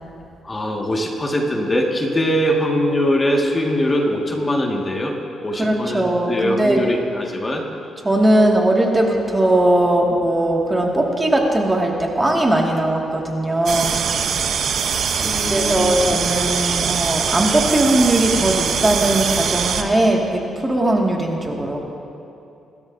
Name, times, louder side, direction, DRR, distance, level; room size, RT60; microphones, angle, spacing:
voice 1, 0.4-5.2 5.4-7.6 15.2-15.9, equal, 25° left, 0 dB, 1.9 m, -22 dB
voice 2, 5.6-6.8 8.0-13.9 15.5-21.8, right 1 dB, 20° right, -1 dB, 2.1 m, -19 dB
sound 1, 13.7-19.8, right 6 dB, 70° right, 0.9 m, -22 dB
26.5 x 13.0 x 2.7 m, 2.7 s
cardioid pair, 75°, 0 cm